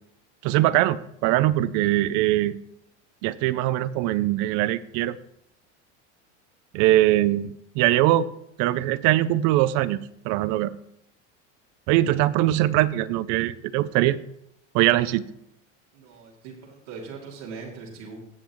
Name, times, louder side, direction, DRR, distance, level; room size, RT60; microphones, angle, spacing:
voice 1, 0.4-2.6 3.2-5.2 6.7-8.3 8.6-10.0 10.2-10.7 11.9-14.2 14.7-15.2, right 15 dB, 55° right, 17 dB, 0.6 m, -22 dB
voice 2, 15.9-18.2, right 4 dB, 80° right, -4 dB, 3.0 m, -40 dB
17.0 x 6.8 x 3.1 m, 0.76 s
supercardioid pair, 130°, 35 cm